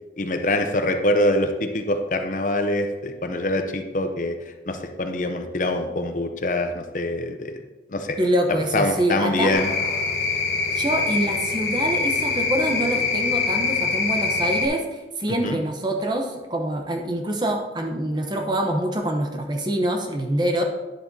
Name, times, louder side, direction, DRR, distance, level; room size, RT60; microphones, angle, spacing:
voice 1, 0.2-4.4 4.7-7.5 7.9-8.2 8.7-9.7 15.4-15.6, left 1 dB, 45° left, 6 dB, 0.6 m, -24 dB
voice 2, 8.2-9.5 10.7-20.6, right 1 dB, 25° right, 3 dB, 0.8 m, -25 dB
sound 1, 9.5-14.7, left 4 dB, 70° left, 1.3 m, -24 dB
10.0 x 7.4 x 2.7 m, 1.2 s
head